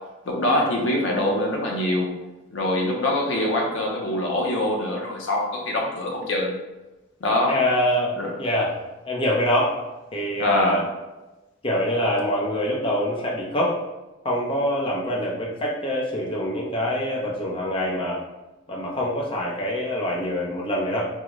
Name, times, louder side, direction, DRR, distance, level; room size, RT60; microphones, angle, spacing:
voice 1, 0.3-2.1 2.5-6.5 7.2-7.6 8.2-8.3 10.4-10.8, left 1 dB, 70° left, 0 dB, 0.6 m, -24 dB
voice 2, 7.5-8.7 9.0-9.8 10.1-10.8 11.6-13.8 14.2-18.2 18.7-21.1, equal, 25° left, -3 dB, 0.6 m, -25 dB
3.7 x 2.1 x 3.0 m, 1.1 s
head